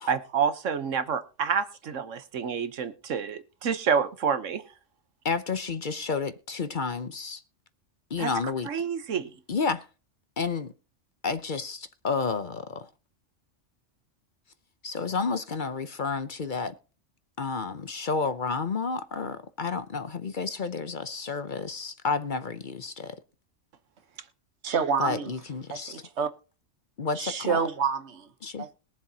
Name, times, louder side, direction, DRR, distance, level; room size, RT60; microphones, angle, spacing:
voice 1, 0.1-4.6 8.2-8.3 8.7-9.3, right 6 dB, 85° right, 1.4 m, -28 dB
voice 2, 5.2-7.4 8.1-8.7 9.5-9.9 10.4-10.7 11.2-12.9 14.8-16.7 17.4-23.2 25.0-26.0 27.0-27.6 28.4-28.7, left 4 dB, 45° left, 0.8 m, -31 dB
voice 3, 24.6-25.3 25.7-26.3 27.2-28.3 28.6-28.7, right 6 dB, 65° right, 1.4 m, -28 dB
21.5 x 7.3 x 2.9 m
omnidirectional pair, 1.3 m